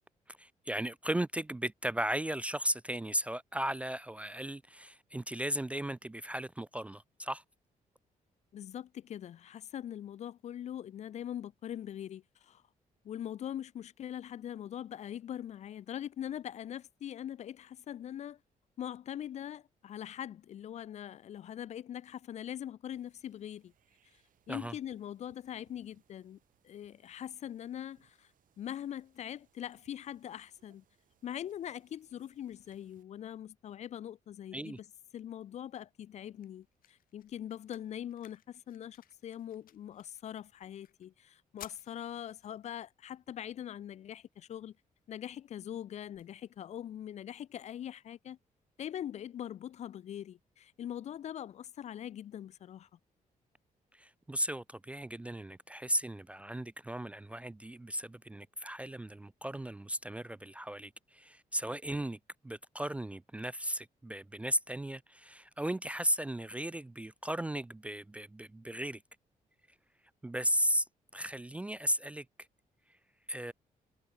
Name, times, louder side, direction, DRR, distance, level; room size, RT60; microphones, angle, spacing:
voice 1, 0.3-7.4 24.5-24.8 34.5-34.8 53.9-69.0 70.2-70.9 71.1-72.3 72.9-73.0 73.3-73.5, equal, 10° right, 0.3 m, -36 dB
voice 2, 8.5-12.6 13.0-18.4 18.8-23.7 24.5-26.4 26.6-28.3 28.6-30.8 31.2-34.8 35.1-44.8 45.1-48.4 48.8-52.9, left 10 dB, 50° left, 0.5 m, -42 dB
sound 1, 22.9-33.0, right 11 dB, 70° right, 4.8 m, -73 dB
sound 2, 35.8-47.8, left 12 dB, 85° left, 6.0 m, -61 dB
wide cardioid pair, 155°, 14 cm